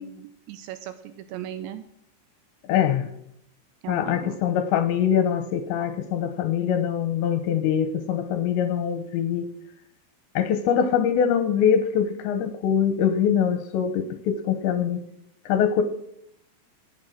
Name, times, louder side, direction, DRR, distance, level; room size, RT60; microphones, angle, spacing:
voice 1, 0.0-1.8 3.8-4.4, right 11 dB, 85° right, 11 dB, 2.6 m, -37 dB
voice 2, 2.7-3.0 3.9-9.5 10.4-15.0 15.5-15.8, left 8 dB, 75° left, 10 dB, 2.8 m, -23 dB
18.0 x 9.0 x 6.5 m, 0.76 s
omnidirectional pair, 5.9 m